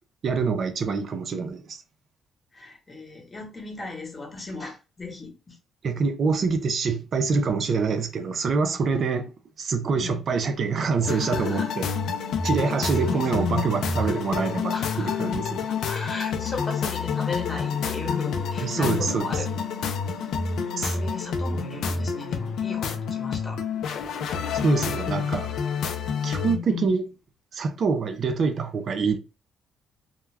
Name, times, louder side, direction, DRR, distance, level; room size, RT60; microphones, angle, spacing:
voice 1, 0.2-1.8 5.8-9.3 9.6-11.9 12.4-15.7 18.6-19.3 20.8-21.0 24.5-25.5 26.2-27.1 27.5-29.2, right 5 dB, 55° right, 0.5 m, -25 dB
voice 2, 2.5-5.6 9.9-10.2 11.1-11.8 13.0-13.6 14.0-14.2 14.7-15.4 15.7-19.5 20.4-23.6 26.4-26.9, left 4 dB, 30° left, 1.1 m, -35 dB
sound 1, 11.0-26.6, left 5 dB, 75° left, 0.4 m, -28 dB
2.3 x 2.1 x 3.2 m
cardioid pair, 90°, 0 cm